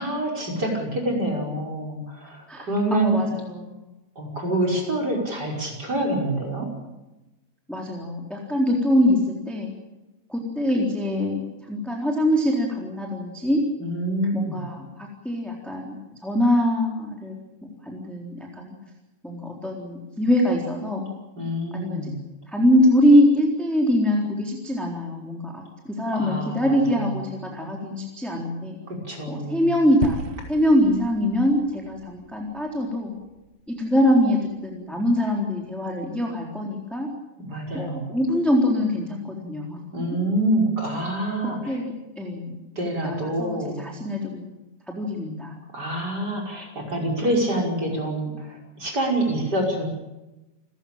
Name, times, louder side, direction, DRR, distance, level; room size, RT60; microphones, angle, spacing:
voice 1, 0.0-3.2 4.2-6.7 13.8-14.6 21.4-22.2 26.1-27.1 28.9-29.7 37.4-38.1 39.9-41.8 42.8-43.8 45.7-49.9, right 1 dB, 20° right, 0 dB, 5.5 m, -26 dB
voice 2, 2.5-3.7 7.7-9.7 10.3-13.6 14.3-17.3 17.8-18.7 19.2-21.1 21.7-22.1 22.5-28.8 29.3-30.2 30.5-33.1 33.7-37.1 37.7-39.8 41.4-42.5 43.0-44.5 44.9-45.6, left 1 dB, ahead, -1 dB, 2.5 m, -23 dB
sound 1, 30.0-34.4, right 6 dB, 70° right, 2.3 m, -37 dB
29.0 x 15.5 x 8.9 m, 1.0 s
omnidirectional pair, 6.0 m